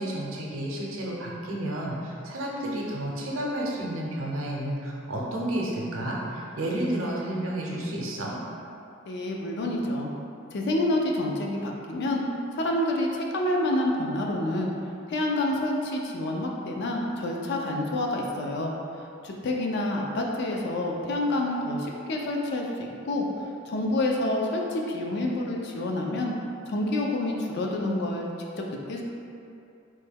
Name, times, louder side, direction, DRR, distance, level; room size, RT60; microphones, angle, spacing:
voice 1, 0.0-8.3, right 1 dB, 75° right, -3 dB, 0.6 m, -31 dB
voice 2, 9.1-10.1 10.5-12.2 12.5-14.7 15.1-18.7 19.2-23.2 23.7-26.3 26.7-28.3 28.6-29.0, left 1 dB, 55° left, 0 dB, 0.4 m, -28 dB
3.1 x 2.2 x 3.4 m, 2.6 s
head